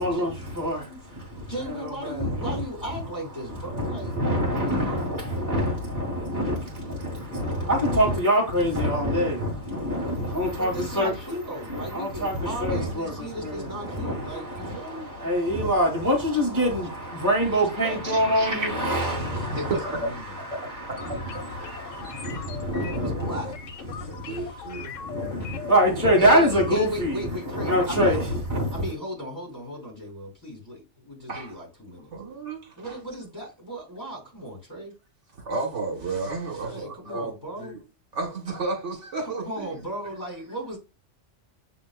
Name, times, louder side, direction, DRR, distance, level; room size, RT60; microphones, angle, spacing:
voice 1, 0.0-2.6 3.5-11.1 11.7-19.7 20.2-23.5 23.9-24.4 24.9-28.8, equal, 15° right, 1.5 m, -25 dB
voice 2, 1.5-4.2 4.6-5.1 10.6-15.1 17.5-18.0 19.3-20.4 23.0-23.5 24.2-24.5 26.2-28.4 28.7-32.1 32.8-34.9 36.6-37.8 39.5-40.8, equal, 15° left, 2.8 m, -36 dB
voice 3, 18.0-18.7 19.5-20.0 20.5-20.6 20.9-21.0 24.1-24.9 31.3-31.6 32.1-33.0 35.3-37.3 37.6-37.8 38.1-39.9, right 3 dB, 80° right, 1.6 m, -32 dB
sound 1, 21.0-26.9, left 7 dB, 85° left, 1.0 m, -40 dB
7.3 x 2.9 x 2.4 m
omnidirectional pair, 1.3 m